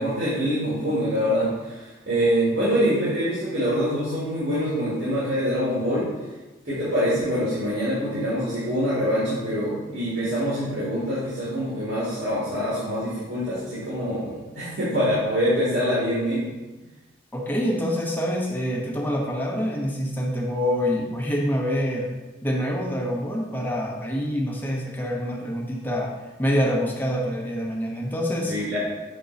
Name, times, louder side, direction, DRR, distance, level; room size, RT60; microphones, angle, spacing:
voice 1, 0.0-6.1 6.7-16.4 28.5-28.8, equal, 70° right, -10 dB, 2.0 m, -25 dB
voice 2, 17.3-22.1 22.4-26.1 26.4-28.5, equal, 10° left, -2 dB, 0.9 m, -26 dB
6.7 x 3.7 x 4.0 m, 1.2 s
head